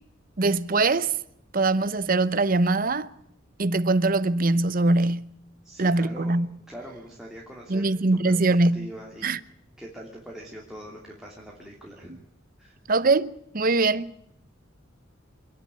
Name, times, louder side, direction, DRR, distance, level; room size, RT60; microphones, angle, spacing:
voice 1, 0.4-1.1 1.5-3.1 3.6-5.3 5.8-6.5 7.7-8.9 9.2-9.4 12.1-12.2 12.9-14.4, right 3 dB, 45° right, 0.8 m, -22 dB
voice 2, 5.6-6.4 6.7-7.8 8.2-9.3 9.8-12.1 12.6-12.8, equal, 5° right, 3.0 m, -42 dB
25.5 x 10.5 x 9.7 m
head